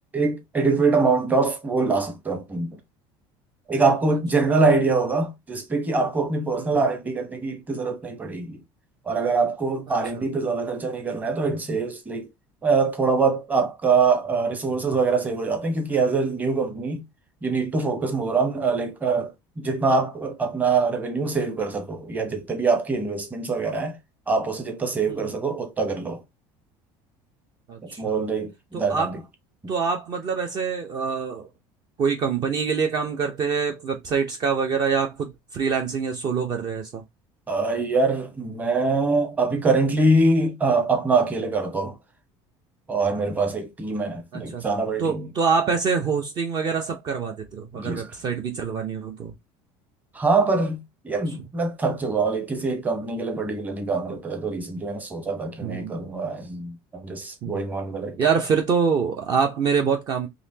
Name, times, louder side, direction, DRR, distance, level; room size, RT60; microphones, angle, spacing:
voice 1, 0.1-2.7 3.7-8.6 9.0-12.3 12.6-17.0 17.4-24.0 24.3-26.2 27.8-29.2 37.5-42.0 42.9-45.3 47.7-48.1 50.1-58.2, right 3 dB, 15° right, 1.0 m, -24 dB
voice 2, 27.7-28.2 28.7-29.1 29.7-31.5 32.0-37.0 44.3-44.6 45.0-49.3 55.6-56.0 57.4-57.6 58.2-60.3, right 6 dB, 40° right, 0.7 m, -25 dB
4.1 x 2.9 x 2.7 m
cardioid pair, 145°, 11 cm